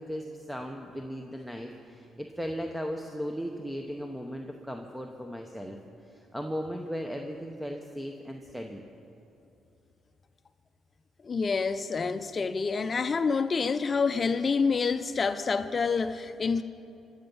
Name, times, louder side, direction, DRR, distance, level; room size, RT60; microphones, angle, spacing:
voice 1, 0.0-5.8 6.1-8.8, equal, 5° right, 3 dB, 0.9 m, -37 dB
voice 2, 11.2-16.6, left 5 dB, 40° left, 10 dB, 0.6 m, -27 dB
23.5 x 8.0 x 5.5 m, 2.8 s
cardioid pair, 90°, 0 cm